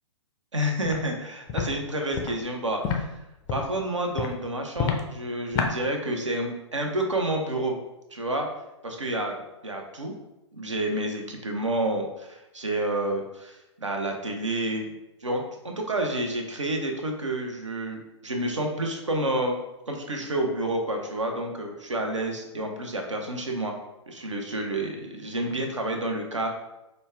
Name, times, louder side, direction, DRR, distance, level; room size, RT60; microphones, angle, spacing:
voice 1, 0.5-3.1 3.5-7.8 8.1-8.5 8.8-10.1 10.5-14.9 15.2-19.6 19.9-23.7 24.1-26.5, right 1 dB, 80° right, 2 dB, 0.8 m, -29 dB
Walk footsteps, 0.8-1.0 1.5-1.7 2.1-2.3 2.8-3.0 3.5-3.7 4.2-4.3 4.8-5.0 5.5-5.7, left 7 dB, 25° left, 0.4 m, -27 dB
5.2 x 2.3 x 3.2 m, 0.93 s
figure-of-eight pair, 115°, 15 cm